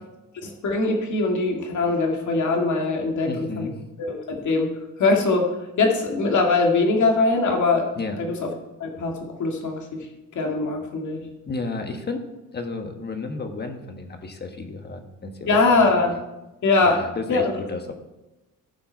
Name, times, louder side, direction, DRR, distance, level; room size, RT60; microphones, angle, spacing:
voice 1, 0.4-3.7 4.0-4.7 5.0-7.9 8.2-8.5 8.8-10.1 10.4-11.3 15.5-16.1 16.6-17.0 17.3-17.5, left 3 dB, 60° left, 2 dB, 2.0 m, -22 dB
voice 2, 3.3-3.8 8.0-8.2 11.4-12.3 12.5-15.5 15.8-15.9 16.8-17.9, left 3 dB, 30° left, 6 dB, 1.3 m, -32 dB
15.5 x 5.6 x 4.5 m, 1.0 s
cardioid pair, 130°, 33 cm